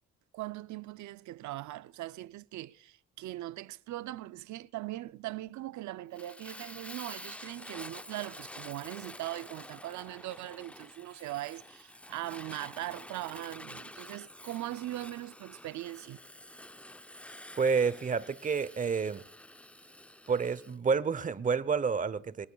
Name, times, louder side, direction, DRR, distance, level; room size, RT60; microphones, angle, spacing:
voice 1, 0.3-16.2, right 16 dB, 70° right, 0.5 m, -40 dB
Fire, 6.1-20.8, left 1 dB, 5° left, 0.5 m, -49 dB
voice 2, 17.6-19.2 20.3-22.5, right 5 dB, 25° right, 0.7 m, -29 dB
25.5 x 18.0 x 2.3 m
cardioid pair, 90°, 30 cm